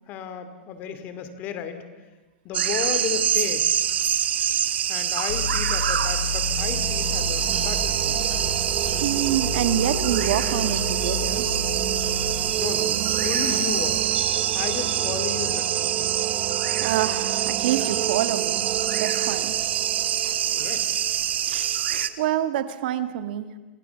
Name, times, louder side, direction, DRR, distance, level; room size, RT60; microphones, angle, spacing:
voice 1, 0.1-1.8 2.4-3.8 4.9-8.3 12.6-14.1 14.5-16.1 20.0-20.1 20.6-21.3, left 8 dB, 30° left, 10 dB, 2.6 m, -33 dB
sound 1, 2.5-22.1, right 10 dB, 85° right, 1.6 m, -25 dB
sound 2, 5.3-12.5, left 6 dB, 75° left, 2.7 m, -32 dB
sound 3, 6.3-21.8, right 13 dB, 35° right, 1.0 m, -32 dB
voice 2, 9.0-11.5 16.8-18.7 19.0-19.6 20.5-20.7 21.9-23.6, right 12 dB, 60° right, 10 dB, 1.8 m, -27 dB
29.5 x 26.5 x 7.1 m, 1.2 s
supercardioid pair, 155°, 6 cm